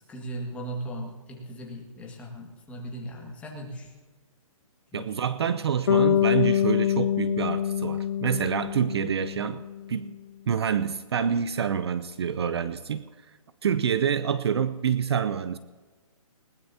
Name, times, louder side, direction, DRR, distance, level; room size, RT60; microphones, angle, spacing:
voice 1, 0.1-3.9 4.9-5.1, right 1 dB, 5° left, -2 dB, 1.7 m, -38 dB
voice 2, 4.9-9.6 9.9-10.2 10.5-13.0 13.6-15.6, right 7 dB, 45° right, 14 dB, 0.5 m, -27 dB
Bass guitar, 5.9-10.0, left 10 dB, 40° left, 0.4 m, -25 dB
20.5 x 19.0 x 2.8 m, 1.4 s
hypercardioid pair, 165°, 18 cm